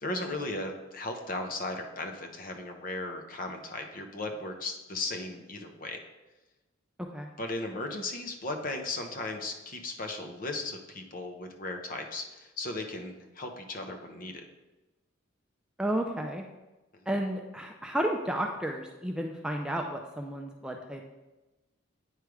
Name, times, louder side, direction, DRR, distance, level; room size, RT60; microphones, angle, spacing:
voice 1, 0.0-6.0 7.4-14.4, left 2 dB, 45° left, 5 dB, 0.8 m, -36 dB
voice 2, 7.0-7.3 15.8-16.5 17.1-21.1, right 1 dB, 5° right, 2 dB, 0.4 m, -32 dB
9.1 x 3.3 x 4.7 m, 1.1 s
head